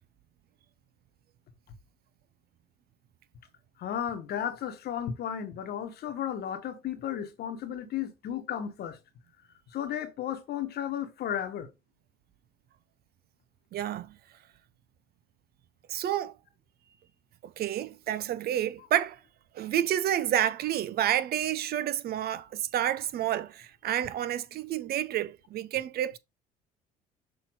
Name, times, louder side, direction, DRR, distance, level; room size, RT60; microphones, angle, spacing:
voice 1, 3.8-9.0 9.7-11.7, left 9 dB, 60° left, 1.3 m, -34 dB
voice 2, 13.7-14.1 15.9-16.3 17.4-19.2 19.5-26.2, right 11 dB, 60° right, 0.7 m, -29 dB
6.4 x 3.2 x 4.7 m
supercardioid pair, 65°, 18 cm